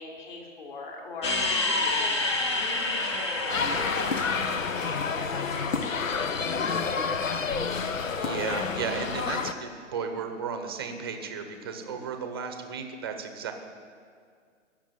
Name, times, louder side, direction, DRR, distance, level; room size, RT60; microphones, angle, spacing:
voice 1, 0.0-7.4 11.7-12.1, left 3 dB, 40° left, 0 dB, 3.1 m, -42 dB
sound 1, 1.2-6.6, left 2 dB, 20° left, 0.8 m, -29 dB
sound 2, 3.5-9.5, left 5 dB, 85° left, 1.1 m, -29 dB
voice 2, 7.9-13.5, right 6 dB, 20° right, 6 dB, 0.8 m, -34 dB
18.0 x 7.3 x 9.1 m, 2.1 s
hypercardioid pair, 165°, 38 cm